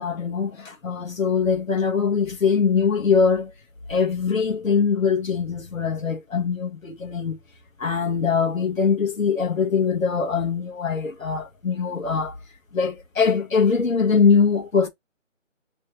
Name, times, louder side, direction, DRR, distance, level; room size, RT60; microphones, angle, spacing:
voice 1, 0.0-3.5 3.9-7.4 7.8-12.4 12.7-14.9, left 5 dB, 90° left, 1.2 m, -22 dB
3.2 x 2.8 x 3.8 m
figure-of-eight pair, 180°, 39 cm